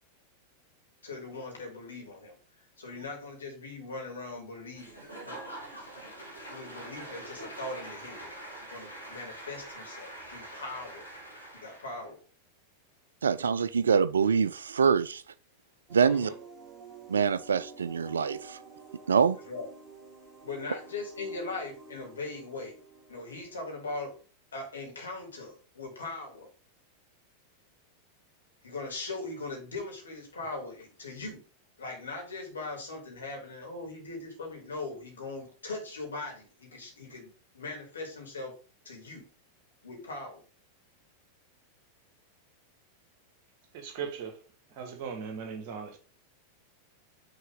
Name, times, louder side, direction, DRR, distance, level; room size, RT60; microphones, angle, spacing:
voice 1, 1.0-2.4 2.8-5.4 6.5-8.3 8.7-11.1 11.5-12.2 16.0-16.4 19.5-19.7 20.4-22.8 23.1-24.2 24.5-26.5 28.6-31.4 31.8-38.6 38.8-39.3 39.8-40.4, left 3 dB, 70° left, 2.6 m, -40 dB
Applause / Crowd, 4.7-12.1, right 1 dB, 85° left, 2.1 m, -44 dB
voice 2, 13.2-15.2 15.9-16.3 17.1-18.6 19.1-19.4, right 6 dB, 70° right, 0.3 m, -25 dB
sound 1, 15.9-24.2, right 5 dB, 20° right, 2.4 m, -50 dB
voice 3, 43.7-44.4 44.8-46.0, right 6 dB, 45° right, 1.4 m, -38 dB
6.4 x 3.9 x 3.8 m
figure-of-eight pair, 90°, 0 cm